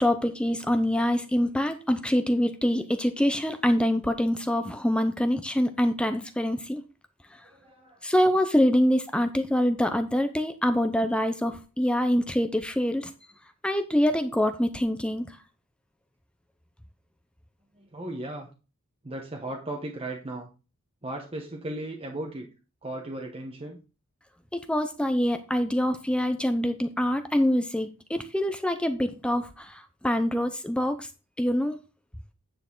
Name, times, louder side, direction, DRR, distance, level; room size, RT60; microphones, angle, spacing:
voice 1, 0.0-6.8 8.0-13.1 13.6-15.3 24.5-31.1 31.4-31.8, equal, 5° left, 8 dB, 0.5 m, -25 dB
voice 2, 7.4-8.0 17.7-18.5 19.0-20.5 21.0-22.5 22.8-23.8, right 1 dB, 25° right, 1 dB, 1.0 m, -36 dB
9.6 x 6.4 x 3.8 m, 0.32 s
head